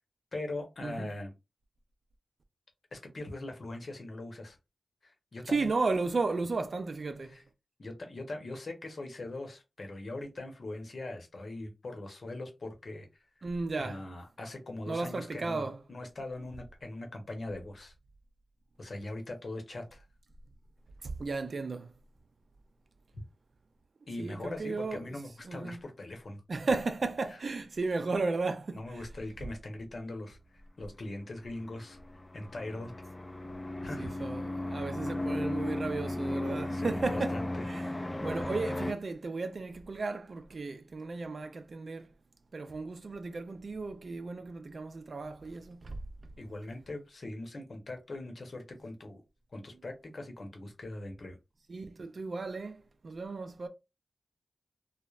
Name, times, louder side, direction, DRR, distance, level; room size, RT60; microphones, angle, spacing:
voice 1, 0.3-1.3 2.9-4.6 5.0-5.7 7.3-7.4 7.8-13.2 13.8-17.9 18.8-20.0 24.1-26.4 27.3-27.4 28.7-30.4 30.8-32.0 32.3-32.9 33.8-34.1 36.7-37.6 46.4-49.2 49.5-51.4, left 2 dB, 60° left, 0.8 m, -41 dB
voice 2, 5.5-7.4 13.4-14.1 14.9-15.8 21.0-21.9 24.2-25.1 25.4-25.8 26.5-29.0 34.0-37.9 38.2-42.1 42.5-46.0 51.7-53.7, right 3 dB, 60° right, 0.4 m, -34 dB
sound 1, 31.6-38.9, left 1 dB, 25° left, 0.4 m, -35 dB
3.1 x 2.0 x 2.4 m
wide cardioid pair, 70°, 0 cm